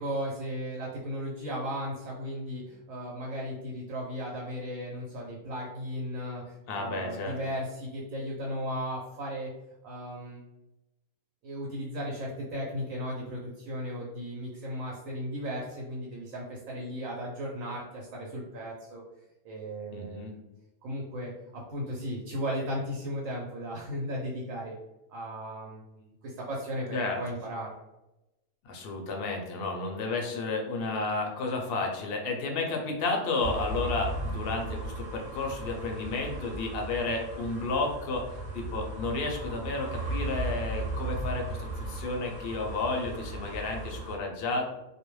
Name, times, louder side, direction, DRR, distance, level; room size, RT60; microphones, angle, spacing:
voice 1, 0.0-9.5 9.8-10.4 11.4-19.0 19.4-20.4 20.8-24.8 25.1-26.9 27.2-27.7, equal, 80° right, -3 dB, 1.0 m, -36 dB
voice 2, 6.7-7.4 19.9-20.3 26.9-27.2 28.6-38.2 38.5-44.7, left 3 dB, 65° left, 2 dB, 0.6 m, -32 dB
sound 1, 33.4-44.2, right 2 dB, 40° right, 0.7 m, -36 dB
2.4 x 2.1 x 3.0 m, 0.97 s
omnidirectional pair, 1.4 m